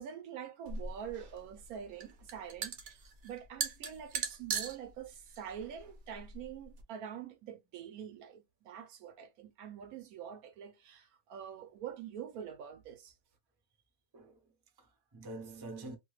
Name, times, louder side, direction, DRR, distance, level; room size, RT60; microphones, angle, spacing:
voice 1, 0.0-13.1, right 9 dB, 80° right, 1.1 m, -45 dB
sound 1, 0.7-6.8, right 5 dB, 60° right, 1.0 m, -40 dB
voice 2, 14.1-16.0, right 2 dB, 30° right, 0.5 m, -47 dB
2.8 x 2.3 x 3.0 m
omnidirectional pair, 1.6 m